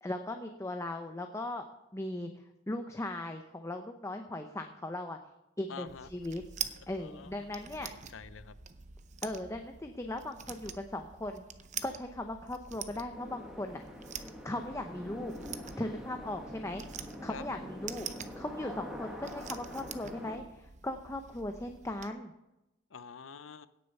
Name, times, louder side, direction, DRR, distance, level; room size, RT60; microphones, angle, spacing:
voice 1, 0.0-1.6 1.9-2.3 2.7-5.2 5.6-6.4 6.9-7.9 9.2-11.4 11.8-13.8 14.2-15.3 15.8-16.8 17.2-18.1 18.4-22.3, left 1 dB, 15° left, 5 dB, 0.7 m, -38 dB
voice 2, 5.7-6.1 6.8-8.5 17.3-17.4 22.9-23.7, left 5 dB, 80° left, 14 dB, 0.7 m, -47 dB
sound 1, 5.9-22.1, right 7 dB, 40° right, 0.7 m, -46 dB
sound 2, 13.1-20.4, left 1 dB, 5° right, 1.5 m, -45 dB
17.0 x 6.7 x 5.4 m, 0.92 s
head